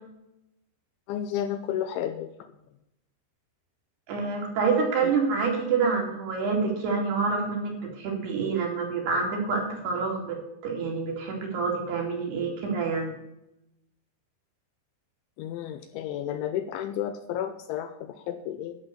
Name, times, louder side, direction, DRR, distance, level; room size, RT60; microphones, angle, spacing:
voice 1, 1.1-2.3 15.4-18.8, left 10 dB, 80° left, 9 dB, 2.9 m, -32 dB
voice 2, 4.1-10.4 10.6-13.1, right 4 dB, 55° right, 1 dB, 4.4 m, -27 dB
12.0 x 8.2 x 6.9 m, 0.85 s
omnidirectional pair, 5.9 m